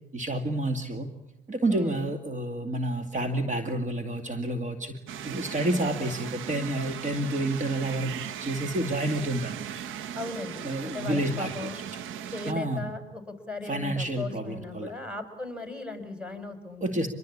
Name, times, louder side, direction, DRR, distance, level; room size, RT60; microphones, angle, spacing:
voice 1, 0.1-1.1 1.5-5.0 5.2-9.6 10.6-11.8 12.5-12.8 13.6-14.9 16.8-17.1, right 1 dB, 40° right, 6 dB, 2.3 m, -29 dB
sound 1, 5.1-12.5, right 9 dB, 90° right, 1.0 m, -38 dB
voice 2, 10.2-11.8 12.3-17.1, left 3 dB, 5° right, 6 dB, 5.8 m, -37 dB
25.5 x 21.5 x 8.6 m, 0.88 s
cardioid pair, 90°, 20 cm